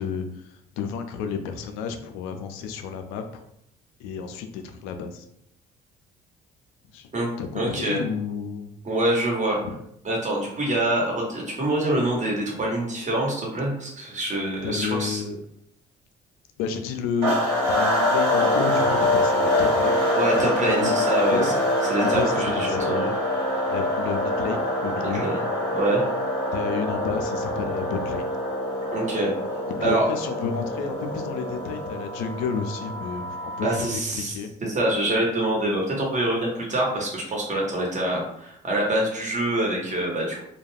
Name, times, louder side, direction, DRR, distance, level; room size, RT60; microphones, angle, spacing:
voice 1, 0.0-3.4 4.0-5.3 6.9-7.1 7.4-8.7 14.6-15.4 16.6-17.4 17.7-20.1 20.4-21.5 22.0-23.2 23.7-25.2 26.5-28.3 29.8-34.5, left 6 dB, 80° left, 6 dB, 0.4 m, -31 dB
voice 2, 7.1-8.0 8.8-9.6 10.0-15.2 20.1-21.5 21.9-23.1 25.0-25.3 25.7-26.0 28.9-29.3 29.8-30.1 33.6-34.3 34.6-40.4, right 1 dB, 35° right, -2 dB, 1.2 m, -25 dB
sound 1, 17.2-33.9, left 1 dB, 85° right, 1.3 m, -25 dB
2.4 x 2.2 x 3.2 m, 0.74 s
supercardioid pair, 60°, 21 cm